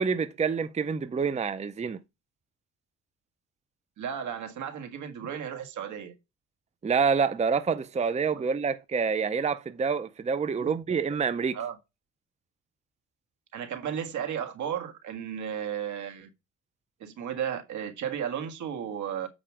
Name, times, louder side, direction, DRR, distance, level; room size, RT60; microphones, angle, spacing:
voice 1, 0.0-2.0 6.8-11.6, right 5 dB, 20° right, 0.6 m, -27 dB
voice 2, 4.0-6.1 8.3-8.5 10.6-10.7 11.5-11.8 13.5-16.3 17.0-19.3, right 8 dB, 75° right, 1.7 m, -34 dB
7.6 x 5.0 x 4.9 m
cardioid pair, 90°, 30 cm